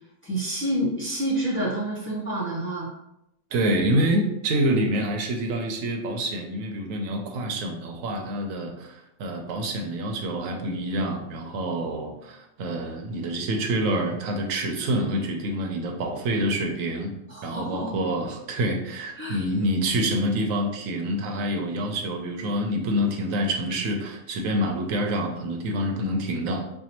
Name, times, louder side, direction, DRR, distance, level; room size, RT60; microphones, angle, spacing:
voice 1, 0.2-2.9 17.3-17.9 19.2-19.4, right 1 dB, 10° left, -6 dB, 0.7 m, -28 dB
voice 2, 3.5-17.1 17.4-26.6, right 1 dB, 85° right, 3 dB, 1.0 m, -27 dB
4.4 x 2.2 x 2.9 m, 0.83 s
omnidirectional pair, 1.4 m